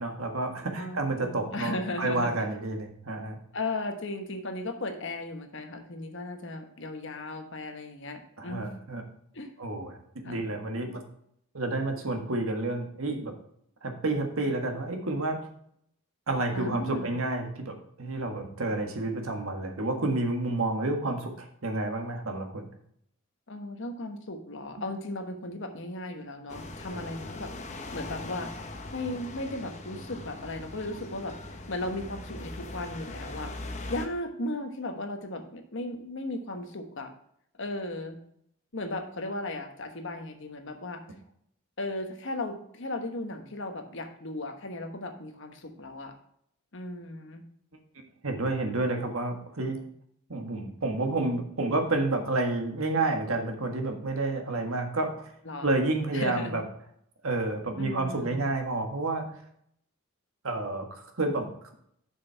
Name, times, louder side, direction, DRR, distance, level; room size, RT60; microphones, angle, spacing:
voice 1, 0.0-3.4 8.4-9.0 9.6-10.0 10.2-11.0 11.5-13.3 13.8-15.4 16.3-22.6 26.9-27.0 48.2-49.8 50.3-55.2 55.6-56.6 57.2-59.2 60.4-61.5, right 2 dB, 75° right, 4 dB, 1.6 m, -30 dB
voice 2, 0.8-2.3 3.5-8.7 9.3-9.5 10.2-10.5 16.5-17.1 23.5-27.5 27.9-28.5 28.9-37.1 37.6-38.2 38.7-41.0 41.8-46.1 46.7-47.5 55.4-55.8 56.1-56.6 57.8-58.4, left 2 dB, 60° left, 6 dB, 1.2 m, -36 dB
sound 1, 26.5-34.1, left 2 dB, 35° left, 0.9 m, -40 dB
7.2 x 6.4 x 4.5 m, 0.70 s
head